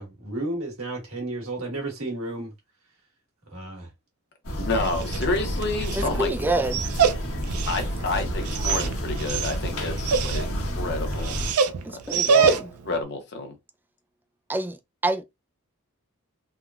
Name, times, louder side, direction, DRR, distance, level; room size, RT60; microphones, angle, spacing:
voice 1, 0.0-2.5 3.5-3.9 5.3-5.6 8.7-8.8, right 2 dB, 65° right, 1.5 m, -33 dB
sound 1, 4.4-11.5, equal, 75° left, 1.2 m, -30 dB
voice 2, 4.6-6.3 7.7-11.4 12.1-12.3 12.9-13.5, left 2 dB, 50° left, 0.8 m, -29 dB
Dog, 4.7-13.0, right 6 dB, 90° right, 0.4 m, -27 dB
voice 3, 6.0-6.8 11.9-12.7 14.5-14.8 15.0-15.2, right 1 dB, 10° right, 0.3 m, -26 dB
3.5 x 2.2 x 2.3 m
head